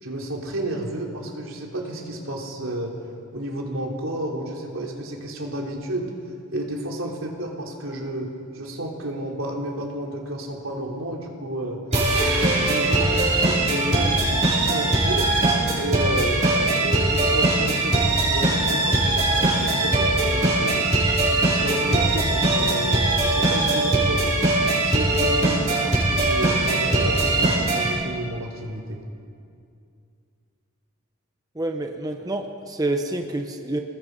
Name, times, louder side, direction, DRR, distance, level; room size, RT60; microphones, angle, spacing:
voice 1, 0.0-3.0 3.3-6.1 6.5-11.8 12.2-15.3 15.7-20.9 21.3-24.4 24.8-29.0, right 1 dB, 85° right, 0 dB, 3.4 m, -31 dB
sound 1, 11.9-27.9, right 2 dB, 35° right, 6.0 m, -21 dB
voice 2, 31.6-33.8, right 2 dB, 20° right, 4 dB, 1.0 m, -28 dB
27.5 x 20.0 x 5.4 m, 2.5 s
head